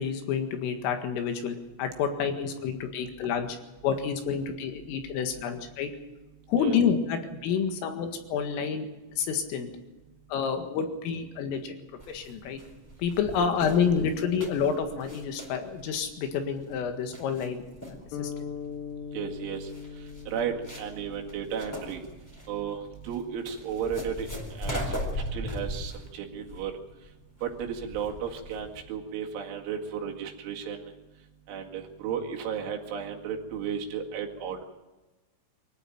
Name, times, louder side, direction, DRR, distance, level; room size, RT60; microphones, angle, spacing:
voice 1, 0.0-3.6 3.8-5.9 6.5-8.9 9.2-9.7 10.3-11.8 12.1-12.6 13.0-17.6 18.2-18.5, left 6 dB, 80° left, 6 dB, 4.4 m, -29 dB
sound 1, 12.0-28.8, equal, 5° left, 3.4 m, -39 dB
voice 2, 18.0-18.8 19.1-27.1 27.4-34.6, right 7 dB, 70° right, 1 dB, 4.4 m, -35 dB
sound 2, 18.1-22.4, left 7 dB, 60° left, 3.0 m, -41 dB
24.0 x 14.5 x 9.2 m, 1.1 s
omnidirectional pair, 5.9 m